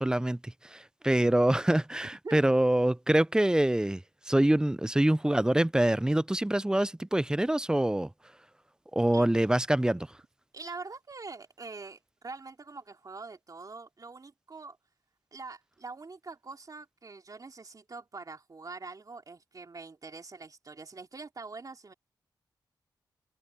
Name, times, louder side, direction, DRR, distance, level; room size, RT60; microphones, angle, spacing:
voice 1, 0.0-4.0 4.3-8.1 8.9-10.1, right 1 dB, 10° right, 0.4 m, -25 dB
voice 2, 2.0-2.4 9.1-9.3 10.5-14.8 15.3-21.9, right 3 dB, 45° right, 3.0 m, -44 dB
cardioid pair, 65°, 8 cm